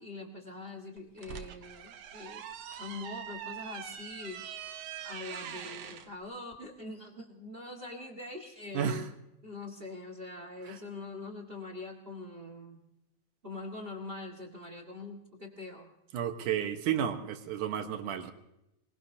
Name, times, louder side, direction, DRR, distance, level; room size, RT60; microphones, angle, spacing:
voice 1, 0.0-2.4 2.8-4.4 5.0-9.1 9.4-12.8 13.4-15.9, left 3 dB, 25° right, 4 dB, 1.3 m, -43 dB
sound 1, 1.0-6.1, right 9 dB, 65° right, 1.8 m, -43 dB
voice 2, 8.7-9.1 10.6-10.8 16.1-18.3, right 9 dB, 85° right, 6 dB, 2.7 m, -32 dB
25.0 x 20.0 x 2.8 m, 0.86 s
omnidirectional pair, 3.5 m